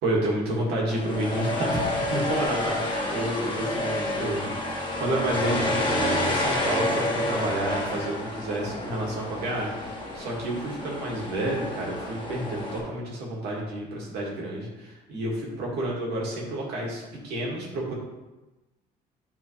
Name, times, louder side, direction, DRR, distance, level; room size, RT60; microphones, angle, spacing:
voice 1, 0.0-4.5 5.0-17.9, right 1 dB, 75° right, -3 dB, 2.1 m, -30 dB
sound 1, 0.9-12.8, left 1 dB, 30° left, 1.6 m, -29 dB
8.8 x 4.3 x 3.2 m, 1.1 s
cardioid pair, 110°, 17 cm